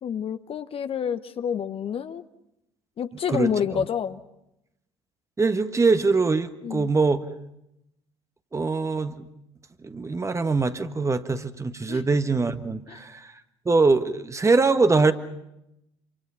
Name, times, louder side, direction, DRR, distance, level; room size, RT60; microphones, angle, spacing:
voice 1, 0.0-2.2 3.0-4.2 6.6-6.9 11.9-12.0 12.9-13.0, left 8 dB, 40° left, 11 dB, 1.0 m, -28 dB
voice 2, 3.3-3.8 5.4-7.2 8.5-9.2 9.8-13.3 13.6-15.1, right 3 dB, 20° right, 10 dB, 1.4 m, -23 dB
27.0 x 26.0 x 5.7 m, 0.84 s
figure-of-eight pair, 60°, 14 cm